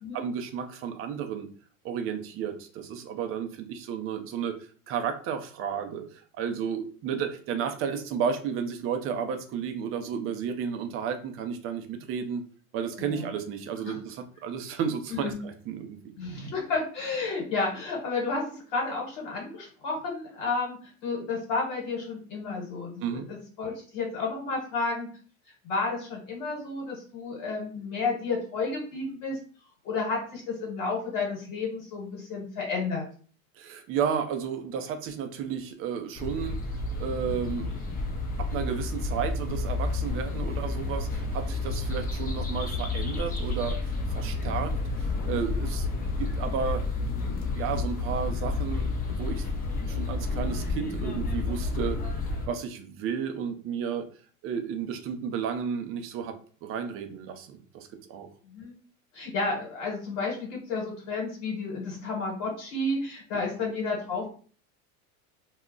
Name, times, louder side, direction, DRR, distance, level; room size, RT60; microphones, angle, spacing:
voice 1, 0.1-1.5 1.8-4.6 4.9-12.4 12.7-16.0 23.0-23.3 33.6-36.6 37.0-37.8 38.4-46.8 47.5-49.4 49.9-52.0 52.5-54.1 54.4-58.3, right 7 dB, 35° right, 6 dB, 0.4 m, -32 dB
voice 2, 16.2-25.1 25.6-29.4 29.8-33.0 58.4-58.8 59.1-64.3, left 3 dB, 60° left, -1 dB, 1.2 m, -31 dB
sound 1, 36.1-52.5, left 3 dB, 20° left, 0.6 m, -30 dB
2.3 x 2.1 x 3.6 m, 0.42 s
supercardioid pair, 110°, 42 cm